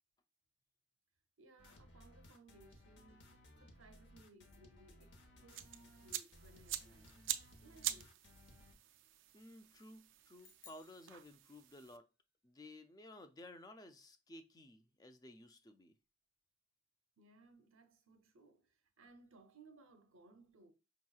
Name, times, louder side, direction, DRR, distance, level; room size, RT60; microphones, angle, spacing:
voice 1, 1.4-7.1 7.6-8.2 17.2-20.7, right 2 dB, 85° right, 0.8 m, -64 dB
sound 1, 1.6-8.7, left 1 dB, 55° left, 0.8 m, -61 dB
sound 2, 5.5-12.0, right 12 dB, 70° right, 0.4 m, -46 dB
voice 2, 9.3-12.0 12.4-15.9, left 1 dB, 20° left, 0.4 m, -56 dB
sound 3, 10.4-12.0, left 6 dB, 85° left, 1.2 m, -64 dB
5.4 x 3.0 x 2.3 m
head